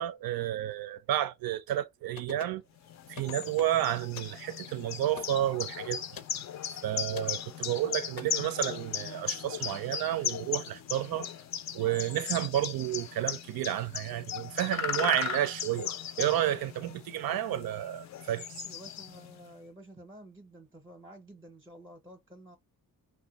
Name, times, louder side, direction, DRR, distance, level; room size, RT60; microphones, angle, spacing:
voice 1, 0.0-2.6 3.1-6.0 6.8-11.3 11.7-15.9 16.2-18.7, right 12 dB, 80° right, 0.5 m, -31 dB
sound 1, 2.2-2.6 3.1-3.8 4.1-4.4 5.2-5.4 6.1-6.4 7.1-7.4 8.2-8.3, left 8 dB, 85° left, 0.7 m, -44 dB
sound 2, 2.9-19.4, left 8 dB, 50° left, 0.4 m, -37 dB
voice 2, 18.6-22.6, right 1 dB, 15° right, 0.6 m, -51 dB
2.6 x 2.2 x 4.0 m
wide cardioid pair, 130°, 35 cm